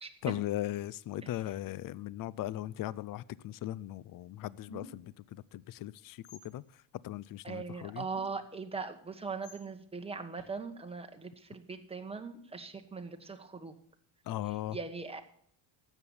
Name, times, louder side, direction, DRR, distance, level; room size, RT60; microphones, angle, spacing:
voice 1, 0.2-6.6 7.0-8.1 14.3-14.8, left 14 dB, 50° left, 21 dB, 0.5 m, -38 dB
sound 1, 4.7-5.1 6.2-6.5 8.1-8.5 9.4-9.6 10.4-10.5, left 1 dB, 85° left, 3.6 m, -51 dB
voice 2, 7.4-13.7 14.7-15.2, right 4 dB, 15° right, 5 dB, 1.3 m, -40 dB
12.5 x 8.2 x 7.1 m, 0.66 s
cardioid pair, 125°, 44 cm